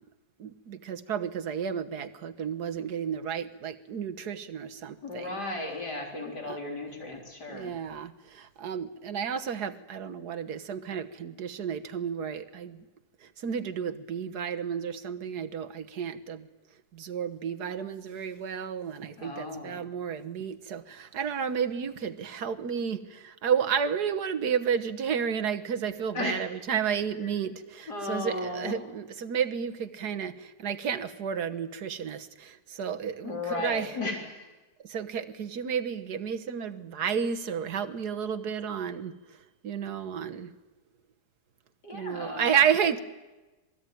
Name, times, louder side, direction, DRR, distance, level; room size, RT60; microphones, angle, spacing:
voice 1, 0.4-5.4 6.4-6.6 7.5-12.9 13.2-16.5 16.9-33.9 34.8-39.1 39.6-40.5 41.9-43.0, right 7 dB, 75° right, 9 dB, 1.8 m, -31 dB
voice 2, 5.0-7.7 19.2-19.9 26.1-26.5 27.9-28.8 33.2-34.5 41.8-42.6, left 2 dB, 90° left, 1 dB, 4.3 m, -35 dB
26.5 x 20.0 x 9.2 m, 1.1 s
omnidirectional pair, 1.7 m